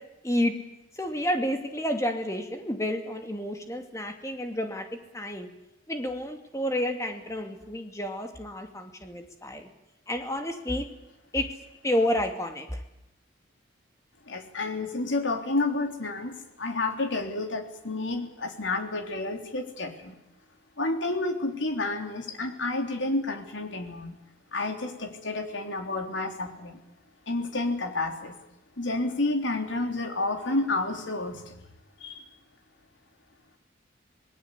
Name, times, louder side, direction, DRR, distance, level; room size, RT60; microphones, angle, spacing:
voice 1, 1.0-4.9 5.1-5.5 5.9-9.7 10.1-10.9 11.3-11.5 11.8-12.8, left 1 dB, 15° left, 5 dB, 2.5 m, -30 dB
voice 2, 14.3-20.1 20.8-24.2 24.5-26.8 27.3-28.4 28.8-31.5 32.0-32.3, left 2 dB, 75° left, 4 dB, 3.4 m, -30 dB
26.5 x 19.5 x 8.3 m, 0.93 s
head